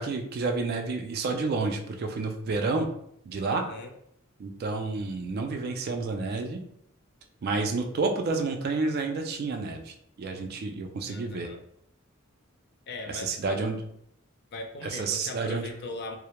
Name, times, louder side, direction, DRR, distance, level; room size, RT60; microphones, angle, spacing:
voice 1, 0.0-2.9 3.3-3.7 4.4-6.6 7.4-11.5 13.1-13.8 14.8-15.6, right 3 dB, 45° right, 5 dB, 0.3 m, -30 dB
voice 2, 3.4-3.9 11.1-11.6 12.9-13.6 14.5-16.2, left 2 dB, 50° left, 4 dB, 0.4 m, -39 dB
2.1 x 2.0 x 2.9 m, 0.73 s
head